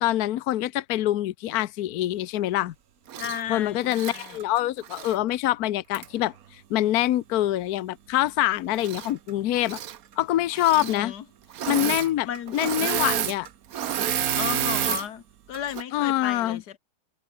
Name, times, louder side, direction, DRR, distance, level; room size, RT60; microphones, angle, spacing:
voice 1, 0.0-2.7 3.5-9.8 10.2-11.1 11.7-12.3 12.5-13.5 15.9-16.6, left 14 dB, 70° left, 0.9 m, -25 dB
Engine / Mechanisms, 3.1-3.4 3.8-5.2 5.9-6.1 8.7-9.3 9.6-10.0 10.5-11.0 11.5-12.1 12.3-15.1 15.5-15.8, right 10 dB, 55° right, 1.1 m, -29 dB
voice 2, 3.2-4.4 10.7-11.2 12.3-12.6 14.2-16.8, left 9 dB, 55° left, 1.5 m, -34 dB
omnidirectional pair, 2.4 m